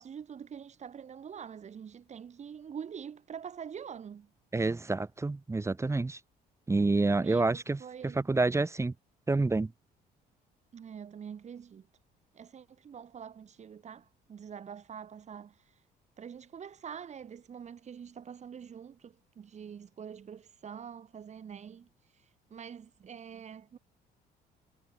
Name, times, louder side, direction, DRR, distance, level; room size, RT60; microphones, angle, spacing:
voice 1, 0.0-4.3 7.2-8.2 10.7-11.9 12.3-15.9 16.2-23.8, right 7 dB, 40° right, 7.7 m, -45 dB
voice 2, 4.5-6.2 6.7-8.9 9.3-9.7, right 3 dB, 15° right, 3.7 m, -28 dB
cardioid pair, 110°, 17 cm